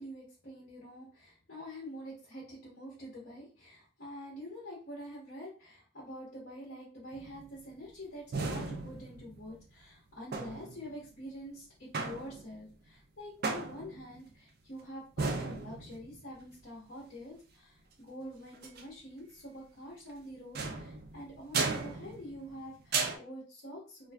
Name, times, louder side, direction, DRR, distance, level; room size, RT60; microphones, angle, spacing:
voice 1, 0.0-24.1, equal, 50° left, -6 dB, 0.8 m, -46 dB
sound 1, 7.1-7.6 8.3-9.6 10.3-10.9 11.9-12.7 13.4-14.2 15.2-16.2 18.5-18.8 20.5-22.6 22.9-23.2, right 4 dB, 50° right, 0.3 m, -36 dB
2.5 x 2.3 x 2.2 m, 0.37 s
head